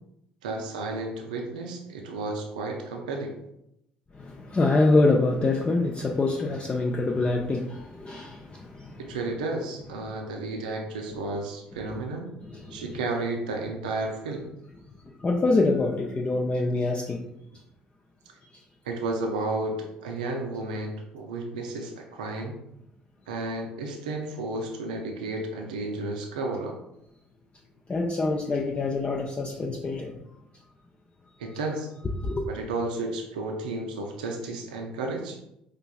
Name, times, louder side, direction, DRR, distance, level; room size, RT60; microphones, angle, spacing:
voice 1, 0.4-3.3 9.0-12.3 12.7-14.5 18.8-22.6 23.3-26.8 31.4-31.9 32.5-35.4, right 2 dB, 80° right, 1 dB, 0.5 m, -32 dB
voice 2, 4.1-9.2 12.5-12.9 15.0-17.2 18.5-18.6 27.9-30.2 32.2-32.5, left 2 dB, 25° left, 0 dB, 0.4 m, -25 dB
4.7 x 2.4 x 2.3 m, 0.82 s
figure-of-eight pair, 55°, 4 cm